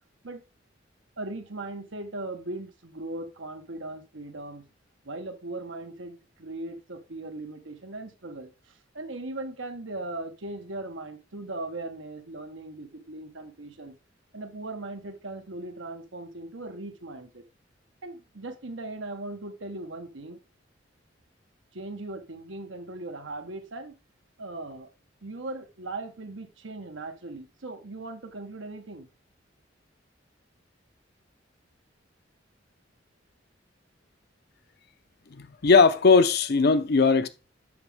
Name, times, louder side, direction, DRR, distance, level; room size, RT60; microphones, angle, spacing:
voice 1, 1.2-4.6 5.0-14.0 14.3-17.4 18.0-20.4 21.7-23.9 24.4-24.9 25.2-29.1, right 2 dB, 90° right, 1.2 m, -38 dB
voice 2, 35.3-37.3, left 4 dB, 60° left, 0.7 m, -19 dB
7.9 x 6.2 x 3.5 m
head